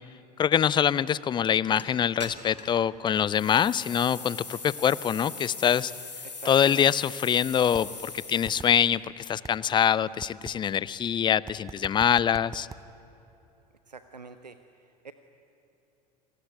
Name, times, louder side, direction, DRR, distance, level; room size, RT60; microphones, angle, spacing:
voice 1, 0.4-5.9 6.5-12.7, left 8 dB, 20° left, 20 dB, 0.6 m, -24 dB
sound 1, 1.8-1.9 2.2-2.8 3.3-8.9, left 4 dB, 85° left, 2.6 m, -41 dB
voice 2, 6.2-6.9 13.9-15.1, right 4 dB, 85° right, 10 dB, 0.8 m, -46 dB
sound 2, 7.7-7.8 8.5-8.7 9.4-9.6 10.2-10.6 11.5-12.8, right 5 dB, 15° right, 1.0 m, -40 dB
27.5 x 19.5 x 9.5 m, 3.0 s
figure-of-eight pair, 75°, 21 cm